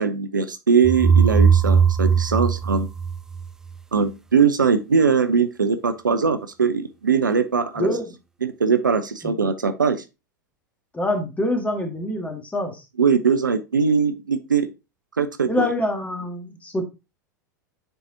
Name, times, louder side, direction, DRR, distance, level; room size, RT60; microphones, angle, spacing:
voice 1, 0.0-2.9 3.9-7.9 8.4-10.0 13.0-14.7 15.2-15.7, right 5 dB, 85° right, 10 dB, 0.6 m, -21 dB
sound 1, 0.8-3.7, right 6 dB, 5° right, 0.4 m, -18 dB
voice 2, 7.8-8.1 9.2-9.4 10.9-12.8 15.5-16.9, left 1 dB, 15° left, 5 dB, 1.6 m, -25 dB
9.1 x 4.0 x 2.7 m, 0.26 s
figure-of-eight pair, 85°, 10 cm